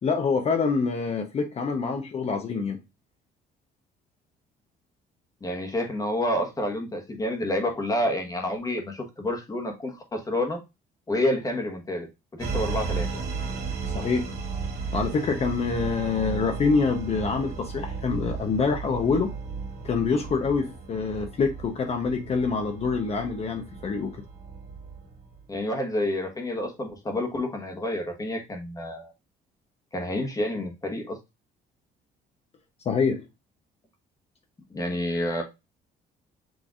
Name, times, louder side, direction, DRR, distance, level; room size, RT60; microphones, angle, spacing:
voice 1, 0.0-2.8 13.9-14.3 14.9-19.3 19.8-24.2 32.9-33.2, left 5 dB, 40° left, 0.7 m, -26 dB
voice 2, 5.4-10.6 11.1-12.1 12.3-13.1 25.5-29.1 29.9-31.2 34.7-35.4, left 1 dB, 20° left, 1.2 m, -29 dB
sound 1, 12.4-25.4, right 5 dB, 75° right, 1.8 m, -34 dB
6.2 x 3.3 x 2.4 m
cardioid pair, 110°, 17 cm